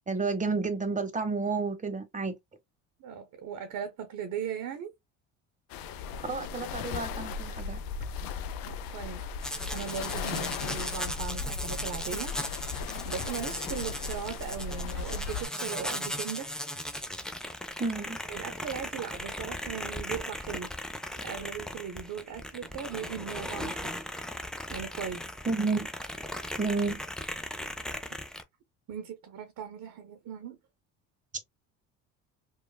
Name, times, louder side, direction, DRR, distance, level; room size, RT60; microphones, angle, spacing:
voice 1, 0.1-2.4 6.2-7.8 17.8-18.2 25.5-25.9 26.6-27.0, right 4 dB, 20° right, 0.9 m, -30 dB
voice 2, 3.0-4.9 8.6-9.2 9.7-12.3 12.8-16.6 18.3-20.8 21.2-24.0 24.7-25.2 28.9-30.6, right 7 dB, 50° right, 0.8 m, -38 dB
sound 1, 5.7-15.5, left 5 dB, 60° left, 0.6 m, -37 dB
sound 2, 9.4-28.4, left 1 dB, ahead, 0.4 m, -37 dB
3.1 x 2.3 x 2.2 m
hypercardioid pair, 70°, 39 cm